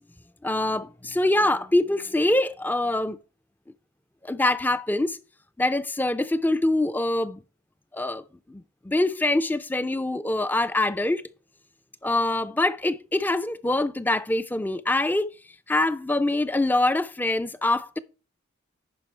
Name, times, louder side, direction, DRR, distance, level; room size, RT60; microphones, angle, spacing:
voice 1, 0.4-3.2 4.2-5.2 5.6-7.4 7.9-11.2 12.0-15.3 15.7-18.0, left 2 dB, 10° left, 0.3 m, -24 dB
10.5 x 5.3 x 4.4 m
head